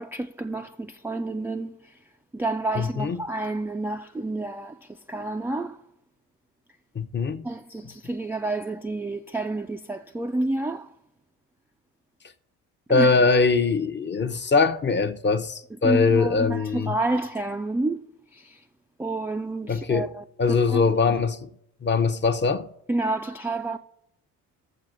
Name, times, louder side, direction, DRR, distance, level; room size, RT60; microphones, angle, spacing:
voice 1, 0.0-2.0 2.3-5.8 7.4-10.9 12.9-13.2 15.8-18.1 18.3-18.6 19.0-21.2 22.9-23.8, right 2 dB, 5° right, 0.3 m, -29 dB
voice 2, 2.8-3.2 6.9-7.4 12.9-16.9 19.7-20.1 20.4-21.5 21.8-22.7, left 4 dB, 25° left, 0.7 m, -22 dB
19.5 x 7.1 x 2.6 m
hypercardioid pair, 55°, 45 cm